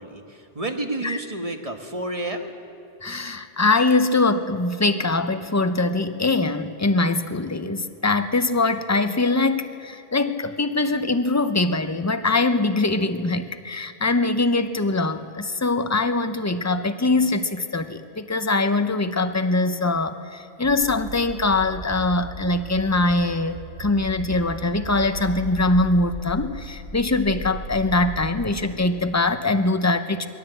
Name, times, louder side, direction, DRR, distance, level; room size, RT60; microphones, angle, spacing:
voice 1, 0.0-2.5, right 1 dB, 30° right, 4 dB, 1.4 m, -30 dB
voice 2, 3.0-30.3, left 2 dB, 20° left, 9 dB, 0.5 m, -22 dB
sound 1, 20.6-28.4, right 1 dB, 65° right, 2.3 m, -36 dB
21.0 x 17.0 x 7.9 m, 2.6 s
omnidirectional pair, 1.2 m